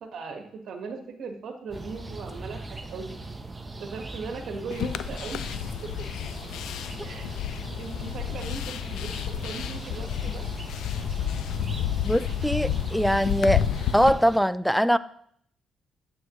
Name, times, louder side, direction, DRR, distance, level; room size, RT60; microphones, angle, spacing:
voice 1, 0.0-3.1 3.8-5.4 6.0-6.1 7.0-7.4 7.7-10.4, right 4 dB, 65° right, 1.4 m, -38 dB
sound 1, 1.7-14.4, right 2 dB, 20° right, 0.9 m, -40 dB
sound 2, 4.7-14.1, left 10 dB, 80° left, 0.4 m, -30 dB
voice 2, 12.0-13.7 13.9-15.0, equal, ahead, 0.3 m, -22 dB
9.3 x 7.9 x 3.1 m
cardioid pair, 90°, 0 cm